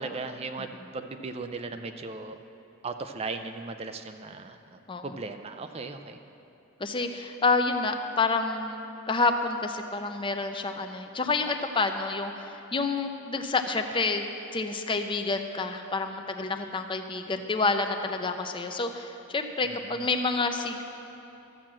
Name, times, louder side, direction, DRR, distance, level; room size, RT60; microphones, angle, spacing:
voice 1, 0.0-2.4 2.8-6.2 19.6-20.1, right 3 dB, 30° right, 8 dB, 0.4 m, -37 dB
voice 2, 6.8-8.8 9.1-14.3 14.5-20.8, left 3 dB, 25° left, 6 dB, 0.6 m, -28 dB
13.0 x 7.4 x 7.4 m, 2.9 s
head